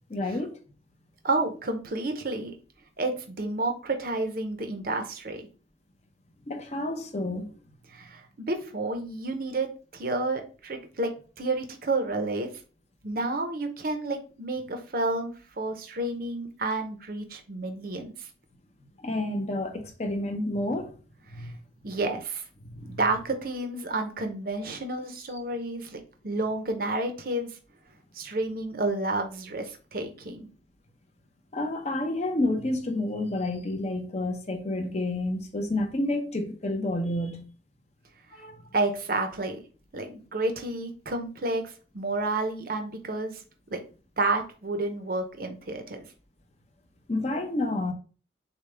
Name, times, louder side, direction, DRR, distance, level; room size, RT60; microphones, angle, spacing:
voice 1, 0.1-0.6 6.5-7.5 19.0-20.9 21.3-21.6 22.6-23.0 31.5-37.5 38.3-38.6 47.1-47.9, left 1 dB, 35° left, 0.8 m, -30 dB
voice 2, 1.2-2.5 3.0-5.4 7.9-11.1 11.4-12.5 13.0-18.3 21.4-21.5 21.8-22.4 22.8-27.5 28.1-30.5 38.7-39.6 39.9-43.4 43.7-43.8 44.2-46.0, right 2 dB, 50° right, 0.7 m, -30 dB
6.7 x 2.3 x 3.3 m
head